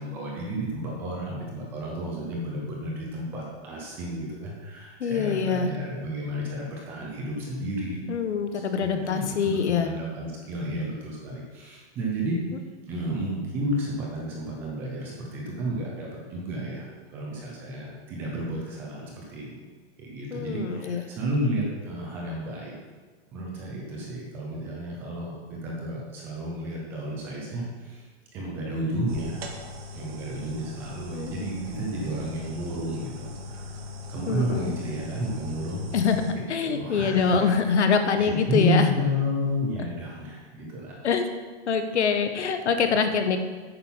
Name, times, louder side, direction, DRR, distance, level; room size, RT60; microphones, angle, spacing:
voice 1, 0.0-8.0 8.4-12.4 12.8-16.9 17.1-19.6 20.0-22.7 23.3-28.1 28.3-29.5 29.9-33.8 34.1-35.9 36.3-41.1, equal, 5° right, -2 dB, 0.5 m, -32 dB
voice 2, 5.0-5.7 8.1-9.9 20.3-21.0 31.1-31.5 34.3-34.7 35.9-38.9 41.0-41.3 41.7-43.4, left 5 dB, 85° left, 7 dB, 1.5 m, -24 dB
sound 1, 29.1-36.3, left 2 dB, 65° right, 2.0 m, -40 dB
10.0 x 8.9 x 5.5 m, 1.4 s
hypercardioid pair, 180°, 33 cm